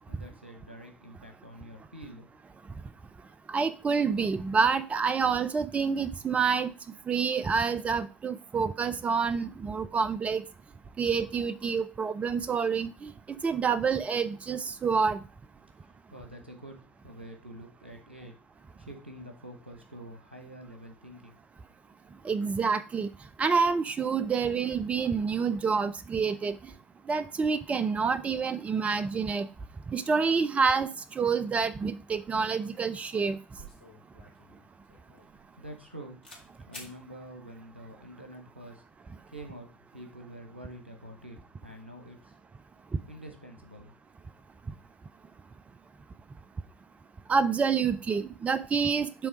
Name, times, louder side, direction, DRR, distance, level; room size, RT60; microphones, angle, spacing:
voice 1, 0.0-2.3 15.8-21.4 35.6-36.2 36.7-38.8 39.3-42.4 43.1-43.9, right 1 dB, 90° right, 1.0 m, -47 dB
voice 2, 3.5-6.7 7.1-10.4 11.0-15.2 22.2-23.1 23.4-26.6 27.1-29.5 29.9-33.4 47.3-49.3, right 5 dB, 20° right, 0.4 m, -28 dB
sound 1, 33.6-35.9 36.2-36.4 36.7-36.9, equal, 80° left, 1.5 m, -50 dB
6.9 x 3.4 x 4.9 m
figure-of-eight pair, 65°, 6 cm